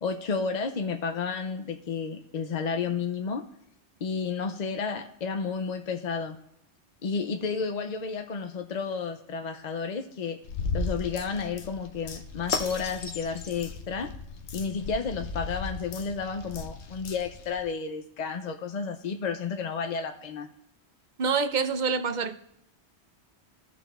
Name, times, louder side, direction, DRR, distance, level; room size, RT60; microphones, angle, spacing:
voice 1, 0.0-3.5 4.0-6.4 7.0-10.4 10.7-14.1 14.5-20.5, left 5 dB, 50° left, 6 dB, 0.5 m, -31 dB
sound 1, 10.4-17.6, left 4 dB, 75° left, 1.1 m, -36 dB
voice 2, 21.2-22.4, right 5 dB, 50° right, 10 dB, 0.6 m, -26 dB
14.5 x 5.9 x 2.4 m, 0.80 s
omnidirectional pair, 1.2 m